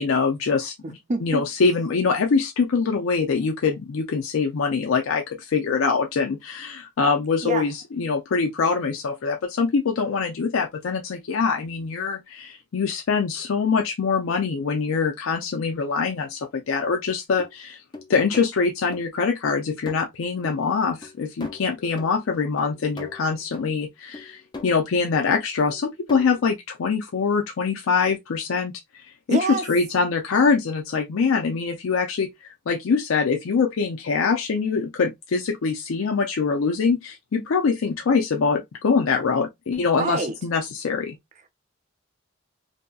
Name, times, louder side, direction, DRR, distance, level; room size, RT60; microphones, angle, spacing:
voice 1, 0.0-17.8 18.1-29.0 29.3-29.4 29.7-41.2, left 5 dB, 85° left, 0.5 m, -24 dB
voice 2, 0.8-1.4 7.4-7.7 29.3-29.7 39.9-40.4, right 2 dB, 35° right, 0.5 m, -26 dB
sound 1, 17.4-17.5 17.9-18.5 18.9-19.0 19.5-20.0 20.4-20.5 21.0-21.1 21.4-22.2 22.6-23.7 24.1-24.8 25.1-25.3 25.7-26.4, left 3 dB, 20° left, 0.4 m, -39 dB
2.7 x 2.6 x 2.3 m
head